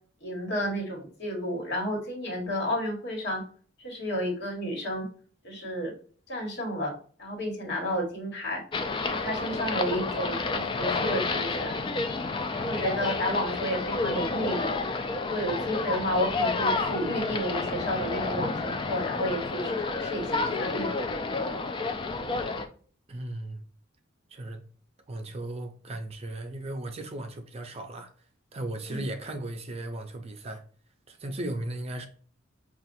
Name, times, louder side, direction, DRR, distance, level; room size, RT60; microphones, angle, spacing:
voice 1, 0.2-3.4 3.8-5.1 5.4-5.9 6.3-6.9 7.2-8.6 9.0-11.7 12.5-14.8 15.2-21.1 28.9-29.0, equal, 60° left, 1.6 m, -31 dB
sound 1, 8.7-22.7, left 3 dB, 25° left, 0.4 m, -30 dB
voice 2, 23.1-23.6 24.3-24.6 25.1-28.1 28.5-30.6 31.1-32.1, right 1 dB, 30° right, 0.5 m, -36 dB
5.9 x 2.4 x 2.6 m
head